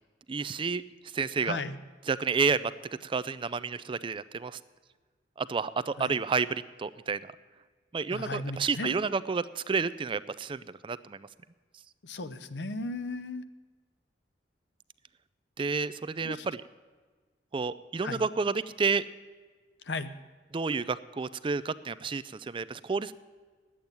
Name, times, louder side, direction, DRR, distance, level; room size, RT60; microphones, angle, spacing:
voice 1, 0.3-0.8 1.1-1.6 2.1-2.7 3.0-4.6 5.4-7.3 7.9-11.3 15.6-16.6 17.5-19.1 20.5-23.1, right 5 dB, 30° right, 15 dB, 0.4 m, -30 dB
voice 2, 1.4-1.8 6.0-6.2 8.1-8.9 12.0-13.4 16.2-16.5 18.0-18.2 19.9-20.1, left 3 dB, 75° left, 12 dB, 0.8 m, -35 dB
10.5 x 8.7 x 9.6 m, 1.4 s
head